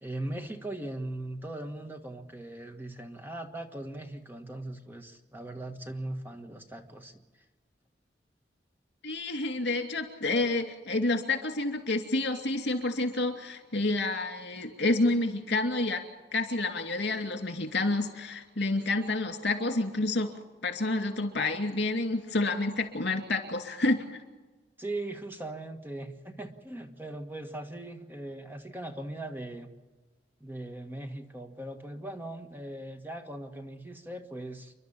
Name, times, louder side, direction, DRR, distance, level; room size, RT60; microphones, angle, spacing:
voice 1, 0.0-7.2 24.8-29.7 30.4-34.7, right 1 dB, 10° right, 5 dB, 1.5 m, -39 dB
voice 2, 9.0-16.0 16.3-20.3 20.6-24.0, left 2 dB, 75° left, 6 dB, 2.6 m, -29 dB
29.5 x 12.0 x 8.7 m, 1.3 s
head